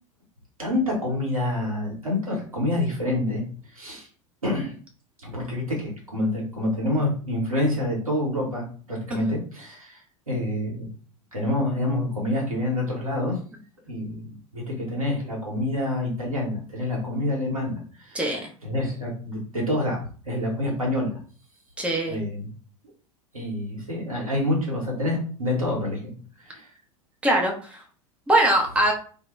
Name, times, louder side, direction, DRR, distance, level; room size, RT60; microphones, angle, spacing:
voice 1, 0.6-3.4 3.7-4.1 4.4-4.7 5.2-10.0 10.3-10.9 11.3-13.4 13.9-20.0 20.2-21.1 22.1-22.5 23.3-26.1 26.4-26.7, left 1 dB, 85° right, -3 dB, 1.0 m, -27 dB
voice 2, 18.1-18.5 21.8-22.2 27.2-27.8 28.3-28.9, right 1 dB, 5° right, 1 dB, 0.5 m, -22 dB
2.1 x 2.1 x 3.0 m, 0.41 s
figure-of-eight pair, 80°, 17 cm